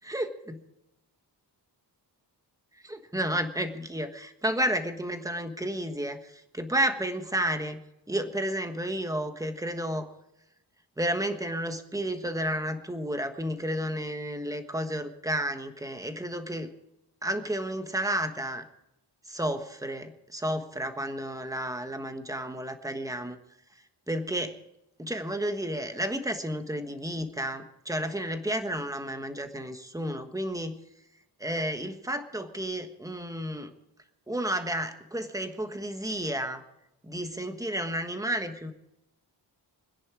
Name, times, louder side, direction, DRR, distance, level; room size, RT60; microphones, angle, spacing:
voice 1, 0.0-0.6 2.8-7.8 8.1-10.1 11.0-16.7 17.2-18.6 19.2-23.4 24.1-24.6 25.0-30.8 31.4-33.7 34.3-36.6 37.0-38.7, right 1 dB, 10° right, 7 dB, 1.3 m, -31 dB
25.5 x 10.5 x 4.8 m, 0.87 s
wide cardioid pair, 165°, 42 cm